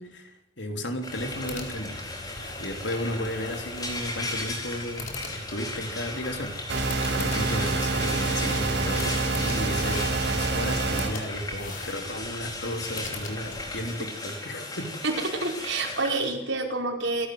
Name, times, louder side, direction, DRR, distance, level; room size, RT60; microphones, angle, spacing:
voice 1, 0.0-15.0, left 1 dB, 65° left, 5 dB, 3.6 m, -34 dB
sound 1, 1.0-14.0, left 3 dB, 45° left, 4.6 m, -42 dB
Frying (food), 1.0-16.2, left 2 dB, 20° left, 4.7 m, -36 dB
sound 2, 6.7-11.1, right 3 dB, 65° right, 6.0 m, -27 dB
voice 2, 15.0-17.3, right 3 dB, 85° right, 2 dB, 5.1 m, -28 dB
28.0 x 13.0 x 8.0 m, 0.83 s
head